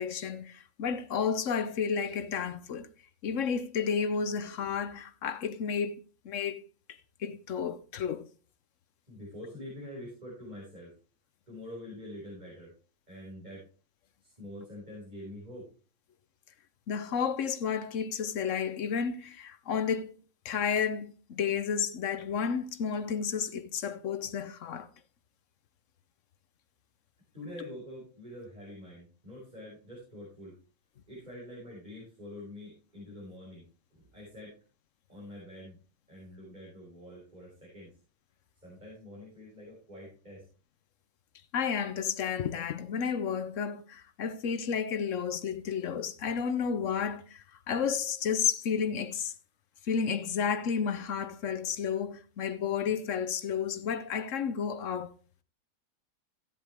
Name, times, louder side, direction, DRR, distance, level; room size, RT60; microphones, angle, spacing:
voice 1, 0.0-2.9 3.2-6.0 6.2-6.6 6.9-8.3 16.9-20.2 20.4-24.9 41.5-49.3 49.8-55.1, left 6 dB, 60° left, 1.0 m, -31 dB
voice 2, 9.1-10.9 11.5-12.7 13.1-13.7 14.2-15.7 27.3-30.6 31.1-34.5 35.1-35.8 36.1-37.9 38.6-40.5, left 1 dB, 25° right, 5.3 m, -46 dB
15.5 x 7.7 x 3.4 m
omnidirectional pair, 1.7 m